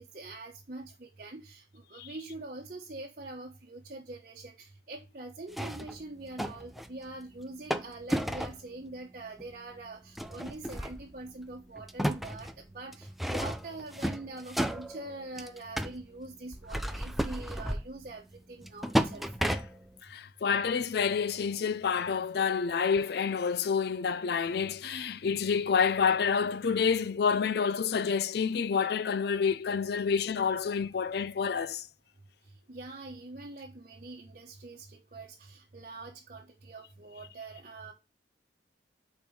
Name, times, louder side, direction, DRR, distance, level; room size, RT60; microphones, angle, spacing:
voice 1, 0.0-19.4 32.7-37.9, right 2 dB, 50° right, 1.0 m, -44 dB
sound 1, 5.5-6.9 7.7-8.6 9.4-9.5 10.2-11.5 11.8-16.0 16.5-18.1 18.6-20.0, equal, ahead, 0.4 m, -33 dB
voice 2, 20.0-31.9, left 6 dB, 65° left, 0.4 m, -28 dB
5.3 x 4.4 x 4.7 m
head